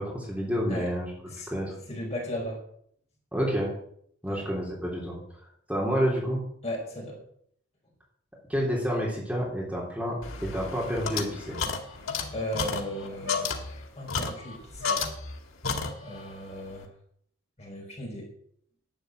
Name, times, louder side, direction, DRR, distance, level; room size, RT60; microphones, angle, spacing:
voice 1, 0.0-1.1 1.5-1.7 3.3-3.7 4.2-5.1 5.7-6.4 8.5-11.6, equal, 5° right, -4 dB, 3.3 m, -29 dB
voice 2, 1.9-2.6 4.3-4.5 6.6-7.2 12.3-13.5 13.9-15.0 16.0-16.9 17.6-18.3, equal, 30° left, -1 dB, 5.0 m, -36 dB
sound 1, 10.2-15.4 15.6-16.3, left 5 dB, 85° left, 2.2 m, -32 dB
11.5 x 9.0 x 7.9 m, 0.66 s
head